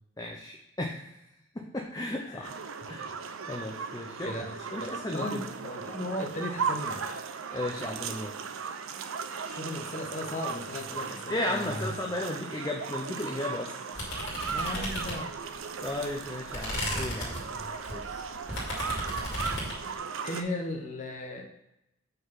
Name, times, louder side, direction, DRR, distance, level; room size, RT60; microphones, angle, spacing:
voice 1, 0.2-1.1 1.5-2.5 2.9-3.1 3.5-5.4 7.5-8.3 11.3-13.8 15.8-17.4, left 1 dB, 20° left, 0 dB, 0.5 m, -34 dB
sound 1, 2.4-20.4, right 5 dB, 90° right, 0.5 m, -37 dB
voice 2, 4.2-7.0 9.5-11.9 14.5-15.4 17.2-18.2 20.2-21.4, left 1 dB, 35° left, 0 dB, 0.9 m, -37 dB
sound 2, 14.0-15.5 15.9-19.8, left 1 dB, 65° left, 2.2 m, -35 dB
5.4 x 3.9 x 5.8 m, 0.85 s
head